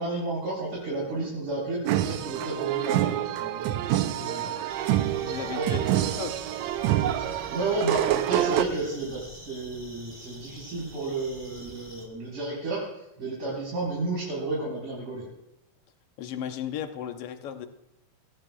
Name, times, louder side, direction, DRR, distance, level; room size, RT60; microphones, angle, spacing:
voice 1, 0.0-4.7 5.5-5.9 7.2-15.3, right 2 dB, 60° right, -7 dB, 5.5 m, -32 dB
sound 1, 1.8-8.6, right 12 dB, 80° right, 1.6 m, -27 dB
sound 2, 4.7-12.1, equal, 10° right, 2.4 m, -47 dB
voice 2, 5.2-6.4 16.2-17.7, left 9 dB, 75° left, 7 dB, 1.4 m, -35 dB
23.5 x 16.0 x 2.3 m, 0.88 s
omnidirectional pair, 3.7 m